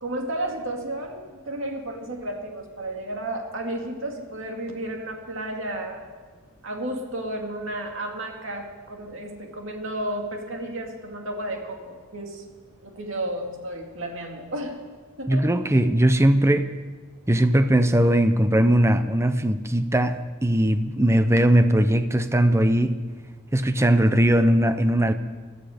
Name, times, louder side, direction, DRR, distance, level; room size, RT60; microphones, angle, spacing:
voice 1, 0.0-6.1 6.6-12.4 12.8-14.8 15.2-15.5, right 1 dB, 65° right, 2 dB, 2.4 m, -32 dB
voice 2, 15.3-16.7 17.3-23.0 23.5-25.1, right 1 dB, 15° right, 10 dB, 0.6 m, -19 dB
18.0 x 12.5 x 5.1 m, 1.4 s
head